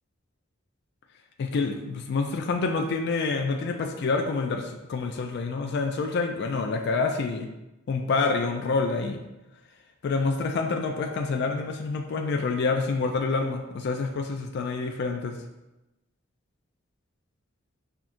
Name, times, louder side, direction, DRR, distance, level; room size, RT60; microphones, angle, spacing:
voice 1, 1.4-7.5 7.9-9.2 10.0-15.4, left 4 dB, 55° left, 3 dB, 0.3 m, -27 dB
5.7 x 2.4 x 2.5 m, 0.98 s
head